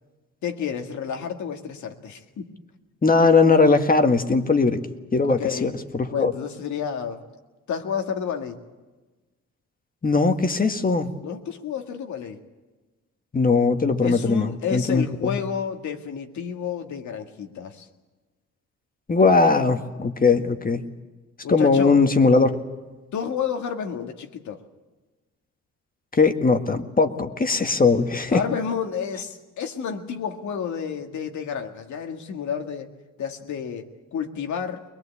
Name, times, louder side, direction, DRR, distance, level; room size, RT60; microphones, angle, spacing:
voice 1, 0.4-2.5 5.2-5.7 6.1-7.2 7.7-8.6 11.2-12.4 14.0-17.8 21.4-22.0 23.1-24.6 28.3-32.9 33.2-34.8, left 7 dB, 70° left, 5 dB, 2.0 m, -30 dB
voice 2, 3.0-4.8 5.1-6.3 10.0-11.1 13.3-15.4 19.1-20.8 21.5-22.5 26.1-28.4, left 4 dB, 30° left, 6 dB, 1.7 m, -19 dB
22.0 x 22.0 x 8.5 m, 1.2 s
cardioid pair, 90°, 30 cm